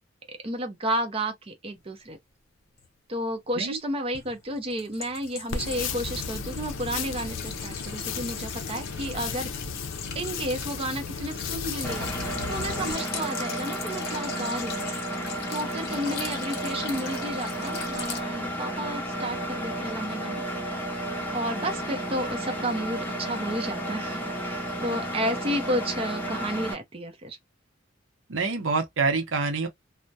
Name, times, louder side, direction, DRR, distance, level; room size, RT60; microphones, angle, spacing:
voice 1, 0.3-2.2 3.1-9.6 10.1-12.1 12.5-14.8 15.5-20.4 21.3-27.4, right 1 dB, 30° right, 0.6 m, -32 dB
sound 1, 2.8-2.9 4.1-18.2, left 6 dB, 55° left, 0.8 m, -40 dB
sound 2, 5.5-12.9, left 5 dB, 85° left, 0.5 m, -34 dB
Engine, 11.8-26.7, right 1 dB, 10° left, 0.7 m, -32 dB
voice 2, 28.3-29.7, right 4 dB, 85° right, 0.7 m, -26 dB
2.2 x 2.1 x 2.6 m
head